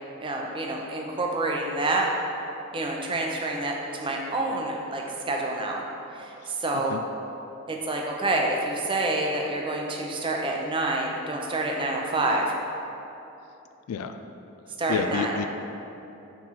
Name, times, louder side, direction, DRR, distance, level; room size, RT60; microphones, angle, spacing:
voice 1, 0.2-2.1 2.7-5.8 6.2-7.0 7.7-12.5 14.8-15.3, right 2 dB, 25° right, 0 dB, 0.6 m, -28 dB
voice 2, 14.9-15.5, left 6 dB, 90° left, 8 dB, 0.3 m, -29 dB
4.6 x 4.5 x 5.6 m, 2.9 s
head